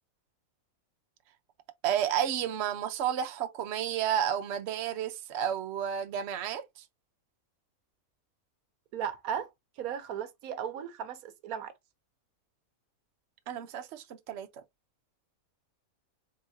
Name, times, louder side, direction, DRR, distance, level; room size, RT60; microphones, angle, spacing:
voice 1, 1.8-6.6 13.5-14.5, right 9 dB, 60° right, 0.9 m, -31 dB
voice 2, 8.9-9.5 9.8-11.7, right 8 dB, 85° right, 1.2 m, -36 dB
3.8 x 3.6 x 2.6 m
omnidirectional pair, 1.5 m